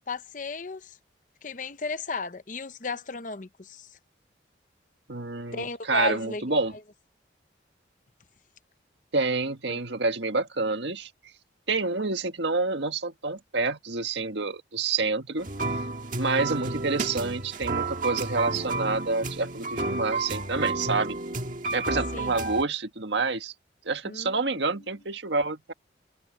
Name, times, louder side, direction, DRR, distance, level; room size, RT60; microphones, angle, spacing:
voice 1, 0.1-1.0 1.4-3.9 5.5-6.6 9.7-9.8 22.1-22.4 24.0-24.8, left 3 dB, 45° left, 0.8 m, -34 dB
voice 2, 5.1-6.7 9.1-11.1 11.7-15.5 16.2-21.2 21.7-23.5 23.8-25.7, right 3 dB, 75° right, 1.7 m, -28 dB
sound 1, 15.4-22.6, right 3 dB, 45° right, 1.7 m, -31 dB
head